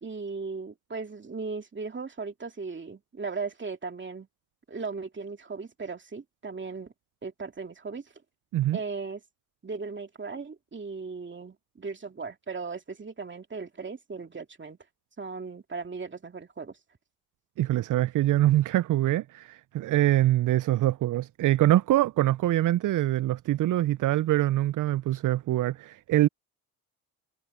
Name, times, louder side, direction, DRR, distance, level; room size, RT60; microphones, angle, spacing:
voice 1, 0.0-4.3 4.7-6.9 7.2-8.1 8.7-9.2 9.6-14.8 15.2-16.8, right 4 dB, 25° right, 2.7 m, -37 dB
voice 2, 17.6-26.3, right 14 dB, 50° right, 0.6 m, -24 dB
hypercardioid pair, 60°, 41 cm